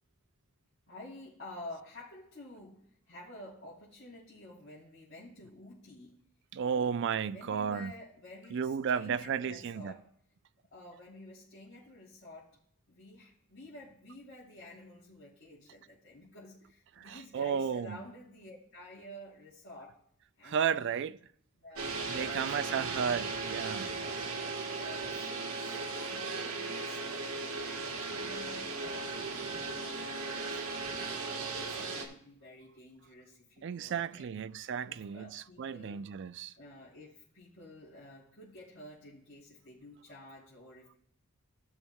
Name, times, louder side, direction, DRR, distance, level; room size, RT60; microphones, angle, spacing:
voice 1, 0.9-6.1 6.6-10.1 10.7-12.5 12.9-20.0 20.4-21.0 21.6-22.9 23.9-27.2 27.6-30.6 31.0-34.4 34.8-36.1 36.6-41.0, left 1 dB, 50° left, 3.2 m, -51 dB
voice 2, 6.5-7.9 8.5-9.9 17.0-18.0 20.4-21.2 22.1-23.9 26.2-26.5 33.6-36.5, right 7 dB, 55° right, 0.3 m, -33 dB
sound 1, 21.8-32.1, right 4 dB, 80° right, 1.3 m, -37 dB
16.0 x 6.3 x 2.2 m
head